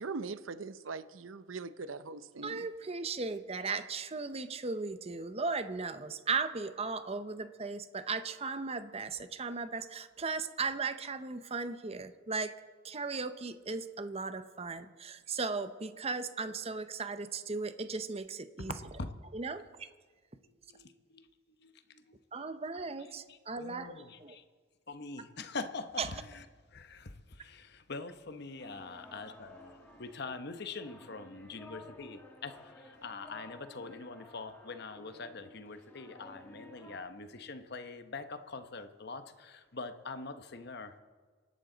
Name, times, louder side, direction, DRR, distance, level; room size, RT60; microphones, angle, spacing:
voice 1, 0.0-2.7, right 4 dB, 85° right, 0.7 m, -41 dB
voice 2, 2.4-12.5 12.8-18.7 19.3-19.9 22.3-24.4 26.0-26.2, right 4 dB, 30° right, 0.7 m, -37 dB
voice 3, 20.7-21.2 21.6-21.7 22.1-22.5 23.3-24.4 24.9-26.4 26.7-27.1 27.4-29.7 30.0-32.6 33.0-41.0, left 3 dB, 55° left, 1.0 m, -44 dB
sound 1, 28.6-37.0, left 1 dB, 10° left, 2.1 m, -54 dB
27.0 x 12.0 x 4.0 m
head